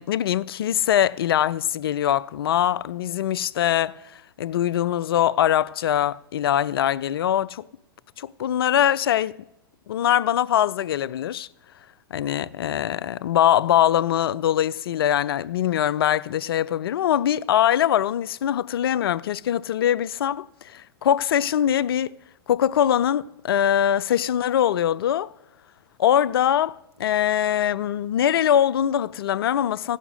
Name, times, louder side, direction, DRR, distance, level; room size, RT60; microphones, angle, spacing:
voice 1, 0.0-3.9 4.4-7.6 8.2-9.4 9.9-11.5 12.1-22.1 22.5-25.3 26.0-30.0, left 10 dB, 75° left, 0.4 m, -22 dB
16.0 x 6.4 x 8.0 m
hypercardioid pair, 105°, 13 cm